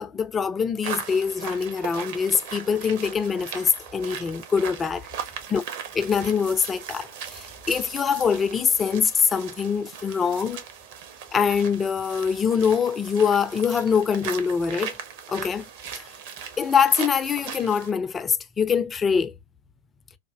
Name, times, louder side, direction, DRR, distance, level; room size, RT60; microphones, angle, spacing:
voice 1, 0.0-5.1 5.5-5.6 5.9-10.6 11.3-15.0 15.3-15.7 16.0-16.1 16.6-19.3, left 6 dB, 20° left, 0.4 m, -24 dB
sound 1, 0.8-17.9, right 8 dB, 50° right, 0.7 m, -38 dB
4.1 x 2.4 x 2.3 m
figure-of-eight pair, 90°, 0 cm